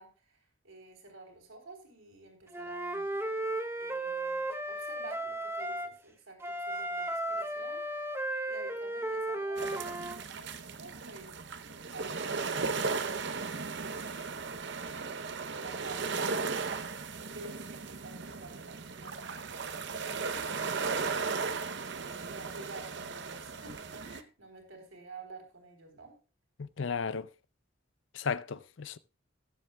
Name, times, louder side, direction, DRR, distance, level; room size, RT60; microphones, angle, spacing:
voice 1, 0.0-3.1 3.8-7.9 8.5-11.3 11.9-14.7 15.6-16.7 17.2-21.5 21.8-26.1, right 3 dB, 75° right, 3.4 m, -51 dB
Wind instrument woodwind instrument, 2.5-5.9 6.4-10.2, right 1 dB, 10° right, 0.7 m, -35 dB
sound 1, 9.6-24.2, right 4 dB, 55° right, 0.7 m, -36 dB
voice 2, 26.6-27.3 28.1-29.0, left 5 dB, 65° left, 0.5 m, -34 dB
20.0 x 7.6 x 2.3 m
head